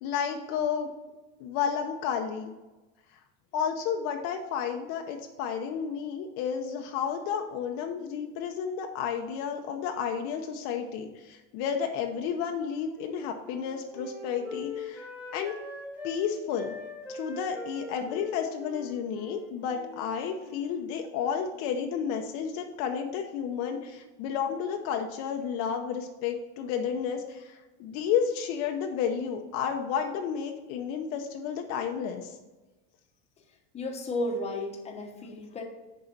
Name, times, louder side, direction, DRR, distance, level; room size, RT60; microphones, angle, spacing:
voice 1, 0.0-0.9 1.4-2.5 3.5-15.5 16.0-16.8 17.1-32.4, left 7 dB, 55° left, 4 dB, 0.7 m, -31 dB
Wind instrument woodwind instrument, 12.3-16.2 16.5-20.1 20.3-20.9, left 3 dB, 5° right, 1.5 m, -42 dB
voice 2, 33.7-35.6, left 1 dB, 20° left, 2 dB, 1.0 m, -33 dB
6.7 x 4.7 x 5.9 m, 1.1 s
supercardioid pair, 145°, 32 cm